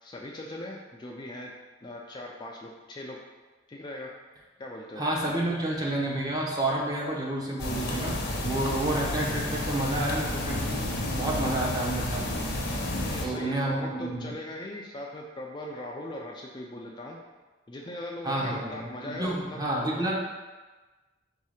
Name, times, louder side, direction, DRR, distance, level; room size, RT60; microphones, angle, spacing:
voice 1, 0.0-1.5 1.8-3.2 3.7-4.1 4.6-5.0 12.9-17.2 17.7-19.6 20.0-20.1, left 1 dB, 25° left, -1 dB, 0.3 m, -39 dB
voice 2, 5.0-10.7 11.1-12.3 13.2-14.3 18.2-20.1, right 1 dB, 20° right, -3 dB, 0.7 m, -30 dB
sound 1, 7.6-13.3, left 1 dB, 60° left, 0.7 m, -31 dB
4.0 x 2.8 x 4.8 m, 1.3 s
head